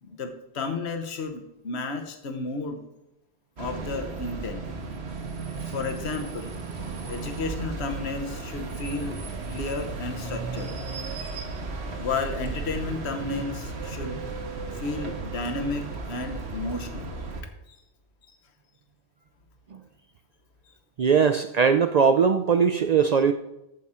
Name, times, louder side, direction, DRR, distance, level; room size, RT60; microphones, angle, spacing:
voice 1, 0.0-2.8 3.6-4.6 5.7-6.5 7.1-9.2 9.5-10.8 12.0-14.2 14.7-17.1 17.7-17.8, left 3 dB, 80° left, 6 dB, 1.2 m, -32 dB
sound 1, 3.6-17.4, right 4 dB, 75° right, 1.4 m, -35 dB
voice 2, 21.0-23.3, right 6 dB, 55° right, 9 dB, 0.4 m, -20 dB
14.0 x 4.8 x 4.3 m, 0.88 s
omnidirectional pair, 1.1 m